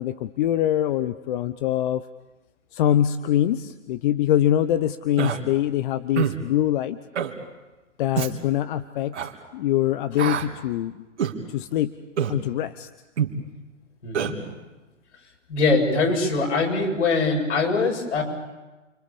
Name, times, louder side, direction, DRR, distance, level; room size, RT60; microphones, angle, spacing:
voice 1, 0.0-2.0 2.7-7.0 8.0-9.1 9.5-11.1 11.5-11.9 12.3-12.9, left 11 dB, 40° left, 12 dB, 0.9 m, -23 dB
Human voice, 5.2-5.4 6.2-6.4 7.1-7.3 8.1-8.3 9.1-9.3 10.2-10.5 11.2-11.4 12.2-12.4 13.2-13.4 14.1-14.3, right 8 dB, 65° right, 3.5 m, -25 dB
voice 2, 14.0-14.4 15.5-18.2, left 3 dB, 65° left, 1 dB, 8.0 m, -22 dB
29.5 x 25.5 x 7.1 m, 1.1 s
figure-of-eight pair, 115°, 37 cm